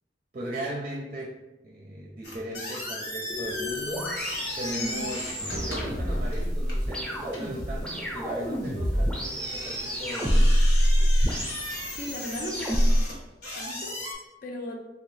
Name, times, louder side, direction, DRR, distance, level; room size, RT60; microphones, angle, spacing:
voice 1, 0.3-1.4 1.6-4.1 4.5-10.3, right 1 dB, 40° right, -1 dB, 0.5 m, -37 dB
sound 1, 2.2-14.1, left 1 dB, 75° left, 1.2 m, -37 dB
sound 2, 3.3-13.0, equal, 5° left, 0.7 m, -26 dB
voice 2, 4.8-5.1 11.9-12.7 13.5-14.8, left 1 dB, 55° left, 2 dB, 0.5 m, -37 dB
3.4 x 2.3 x 3.2 m, 1.0 s
head